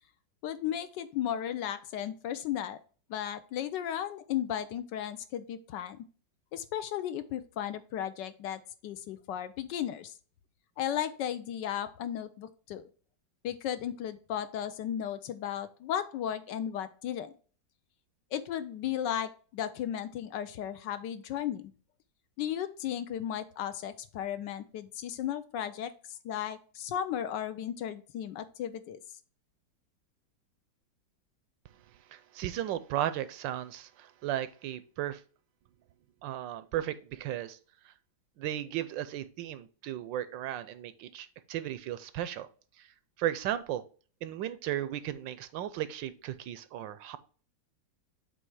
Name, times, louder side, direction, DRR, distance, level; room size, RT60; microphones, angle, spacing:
voice 1, 0.4-2.8 3.1-6.0 6.5-10.1 10.8-12.8 13.4-17.3 18.3-21.7 22.4-29.0, left 10 dB, 75° left, 12 dB, 1.2 m, -35 dB
voice 2, 32.1-35.2 36.2-37.6 37.8-37.9 38.4-42.5 42.8-43.9 44.2-47.2, right 12 dB, 75° right, 14 dB, 1.2 m, -35 dB
7.7 x 3.2 x 4.7 m, 0.39 s
omnidirectional pair, 2.1 m